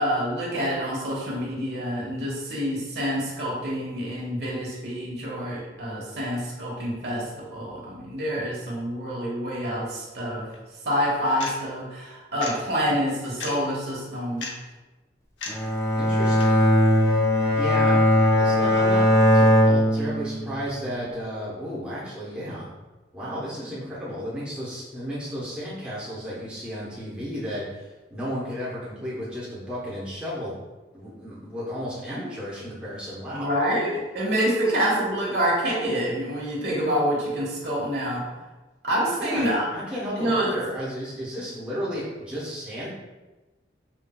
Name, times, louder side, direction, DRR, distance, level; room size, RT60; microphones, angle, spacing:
voice 1, 0.0-10.4 10.8-14.5 33.3-38.2 38.8-39.6 40.2-40.5, equal, 65° right, -5 dB, 1.3 m, -27 dB
sound 1, 10.5-10.6 11.4-11.6 12.4-12.5 13.4-13.6 14.4-14.5 15.4-15.5 16.4-16.5, left 3 dB, 85° left, 0.7 m, -33 dB
Bowed string instrument, 15.5-20.7, left 1 dB, 15° left, 0.4 m, -19 dB
voice 2, 16.0-16.6 16.9-17.2 17.6-18.0 18.4-22.7 23.1-30.6 30.9-33.5 39.2-39.5 39.7-42.9, equal, 5° right, -9 dB, 1.0 m, -33 dB
5.5 x 3.1 x 2.3 m, 1.2 s
head